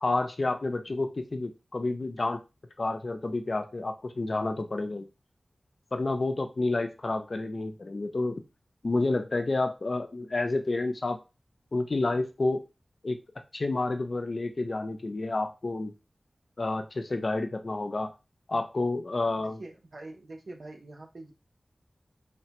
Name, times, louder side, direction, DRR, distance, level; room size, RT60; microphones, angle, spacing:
voice 1, 0.0-2.4 2.8-5.1 5.9-8.4 8.8-11.2 11.7-12.6 13.0-13.2 13.5-15.9 16.6-18.1 18.5-19.6, left 2 dB, 55° left, 7 dB, 0.4 m, -29 dB
voice 2, 19.4-21.3, right 2 dB, 75° right, 2 dB, 0.6 m, -45 dB
3.2 x 2.1 x 2.9 m, 0.28 s
wide cardioid pair, 85°, 0 cm